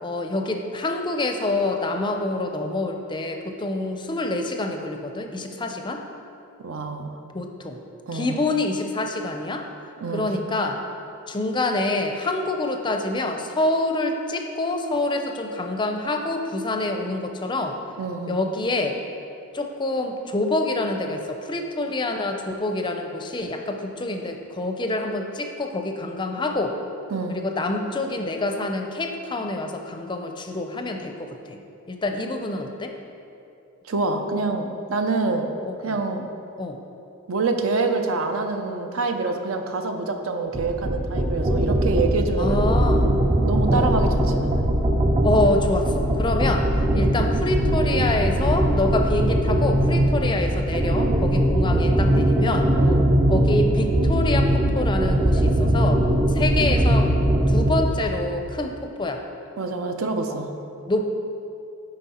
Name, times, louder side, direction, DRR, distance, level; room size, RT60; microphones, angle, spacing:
voice 1, 0.0-6.0 7.3-7.8 8.1-9.7 10.1-10.8 11.3-17.8 18.3-19.0 19.5-26.8 27.3-31.6 31.9-32.9 35.6-36.0 36.6-36.8 42.4-43.1 43.7-43.9 45.2-52.7 53.3-56.0 56.3-57.1 57.5-59.2 60.9-61.1, left 2 dB, 20° left, 4 dB, 0.5 m, -26 dB
voice 2, 6.6-7.1 8.1-8.4 10.0-10.3 18.0-18.4 27.1-27.4 33.9-35.5 35.8-36.3 37.3-42.7 43.5-44.7 46.4-46.6 52.8-53.0 59.6-60.5, right 3 dB, 65° right, 5 dB, 0.6 m, -26 dB
sound 1, 40.5-58.0, right 1 dB, 25° right, 0.5 m, -20 dB
9.2 x 5.3 x 4.3 m, 2.7 s
head